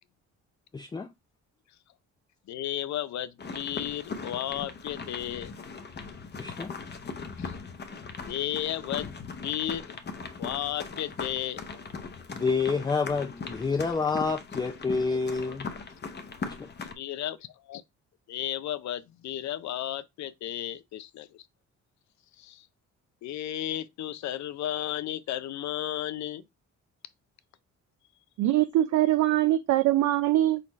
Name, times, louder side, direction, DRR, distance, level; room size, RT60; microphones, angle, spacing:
voice 1, 0.7-1.1 6.4-6.7 12.3-15.7 16.4-16.7, left 4 dB, 15° left, 0.4 m, -28 dB
voice 2, 2.5-5.5 7.4-7.5 8.2-9.9 10.4-11.7 17.0-17.8 18.3-21.5 22.4-22.7 23.2-26.4, left 12 dB, 65° left, 0.6 m, -34 dB
sound 1, 3.4-16.9, left 4 dB, 35° left, 0.9 m, -39 dB
voice 3, 28.4-30.6, right 14 dB, 70° right, 0.5 m, -23 dB
4.1 x 4.0 x 3.1 m
cardioid pair, 90°, 30 cm